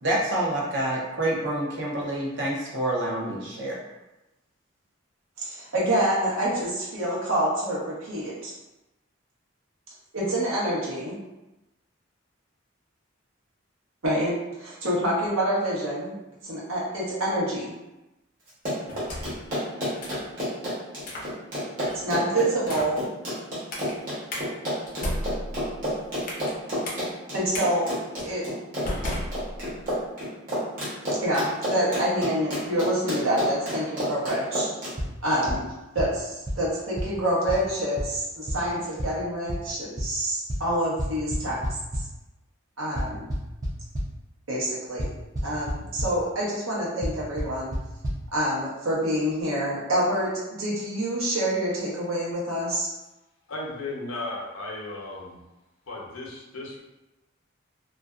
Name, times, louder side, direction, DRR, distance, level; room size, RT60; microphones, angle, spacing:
voice 1, 0.0-3.8, right 1 dB, 60° right, -4 dB, 0.6 m, -27 dB
voice 2, 5.4-8.5 10.1-11.2 14.0-16.2 16.4-17.8 21.9-23.0 27.3-27.9 28.2-28.4 30.8-30.9 31.2-34.7 35.2-41.8 42.8-43.3 44.5-45.1 45.4-47.7 48.3-50.3 50.6-52.9, right 1 dB, 85° right, -6 dB, 0.9 m, -27 dB
Run, 18.5-34.9, equal, 40° right, 0.9 m, -30 dB
sound 1, 18.9-19.5 20.0-20.3 21.0-21.3 21.8-22.1 22.6-23.0 23.7-23.9 24.3-24.4 24.9-26.5 26.8-27.0 27.5-27.7 28.2-28.3 28.8-29.9, left 1 dB, 40° left, 0.5 m, -34 dB
sound 2, 35.0-35.1 35.5-35.6 36.0-36.1 36.5-36.6 37.0-37.1 37.5-37.6 38.0-38.1 38.5-38.6 39.0-39.1 39.5-39.6 40.0-40.1 40.5-40.6 41.0-42.0 43.0-44.1 45.0-45.1 45.4-45.7 46.0-46.1 47.0-47.1 47.4-47.5 47.7-47.8 48.0-48.1, equal, 15° right, 0.4 m, -27 dB
voice 3, 53.5-55.4 55.9-56.8, left 2 dB, 85° left, -3 dB, 0.6 m, -35 dB
2.4 x 2.1 x 2.3 m, 1.0 s
head